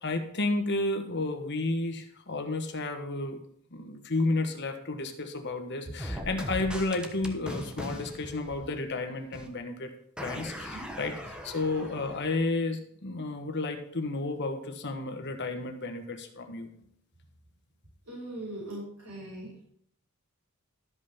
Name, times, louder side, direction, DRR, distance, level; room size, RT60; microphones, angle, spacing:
voice 1, 0.0-3.4 3.7-9.9 10.2-16.7, left 2 dB, 50° left, 6 dB, 1.3 m, -32 dB
sound 1, 6.0-9.1 9.3-9.5 10.2-12.5, equal, 5° right, 1.1 m, -39 dB
voice 2, 18.1-19.5, right 1 dB, 85° right, -6 dB, 5.4 m, -40 dB
12.5 x 5.5 x 5.6 m, 0.67 s
head